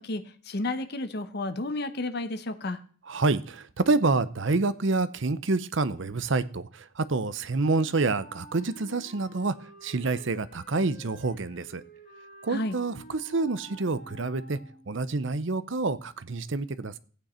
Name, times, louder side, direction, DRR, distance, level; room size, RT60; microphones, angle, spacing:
voice 1, 0.0-2.8 12.5-12.7, left 2 dB, 50° left, 10 dB, 0.9 m, -32 dB
voice 2, 3.1-9.5 9.8-11.8 12.4-14.6 14.9-17.0, right 3 dB, 60° right, 15 dB, 0.7 m, -27 dB
Wind instrument woodwind instrument, 7.7-15.0, right 1 dB, 35° left, 4.6 m, -50 dB
14.5 x 9.1 x 4.3 m, 0.43 s
head